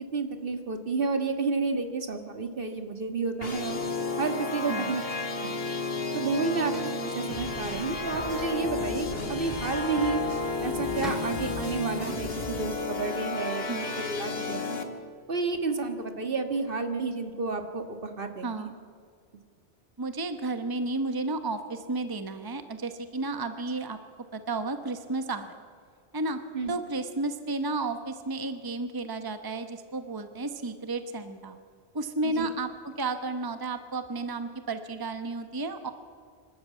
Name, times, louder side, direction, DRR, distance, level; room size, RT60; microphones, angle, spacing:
voice 1, 0.1-3.8 4.2-5.0 5.4-5.6 6.1-6.7 7.0-10.2 10.6-13.6 14.0-14.9 15.3-18.7 26.5-26.7 32.2-32.5, right 4 dB, 60° right, 7 dB, 1.8 m, -31 dB
sound 1, 3.4-14.8, left 3 dB, 65° left, 2.0 m, -32 dB
voice 2, 4.7-5.0 13.7-13.9 18.4-18.8 20.0-24.0 24.3-25.6 26.1-26.4 26.7-31.6 31.9-35.9, right 3 dB, 20° right, 9 dB, 1.1 m, -32 dB
sound 2, 6.7-7.0 10.7-10.8 11.0-11.4, left 1 dB, ahead, 4.7 m, -39 dB
sound 3, 7.3-12.6, left 1 dB, 30° left, 4.7 m, -42 dB
26.0 x 13.0 x 8.4 m, 2.1 s
omnidirectional pair, 1.1 m